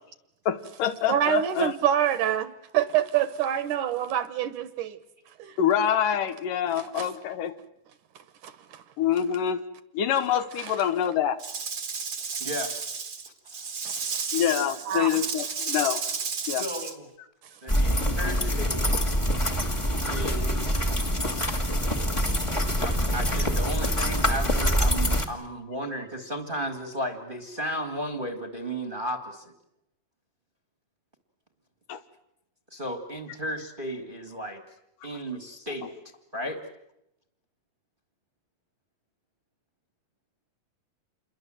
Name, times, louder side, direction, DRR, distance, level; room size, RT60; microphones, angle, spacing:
voice 1, 0.5-1.7 5.6-7.5 9.0-9.6 9.9-11.4 14.3-16.0 16.5-16.6 31.9-32.0, left 9 dB, 75° left, 2.7 m, -26 dB
voice 2, 1.1-5.0 5.4-5.6 7.0-7.1 8.4-8.8 10.6-10.8 13.8-14.0 14.9-15.2, right 10 dB, 70° right, 2.3 m, -26 dB
Rattle / Rattle (instrument), 11.4-16.9, right 5 dB, 45° right, 1.3 m, -32 dB
voice 3, 12.4-12.8 16.6-17.0 17.6-19.1 20.1-20.8 22.8-29.5 32.7-34.6 35.0-35.9 36.3-36.6, equal, 20° right, 1.3 m, -34 dB
sound 1, 17.7-25.2, equal, 15° left, 1.0 m, -25 dB
28.0 x 22.5 x 7.7 m
omnidirectional pair, 4.1 m